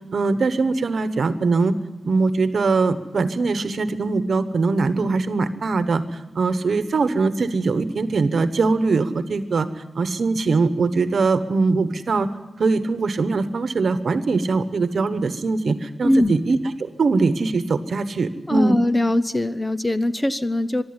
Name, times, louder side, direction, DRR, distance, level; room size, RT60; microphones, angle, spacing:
voice 1, 0.1-1.8 2.0-6.0 6.3-9.7 9.9-12.3 12.6-18.8, right 3 dB, 65° right, 11 dB, 1.2 m, -21 dB
voice 2, 16.0-16.3 18.5-20.8, left 1 dB, 15° left, 12 dB, 0.6 m, -21 dB
23.5 x 12.0 x 9.6 m, 1.1 s
wide cardioid pair, 175°, 0 cm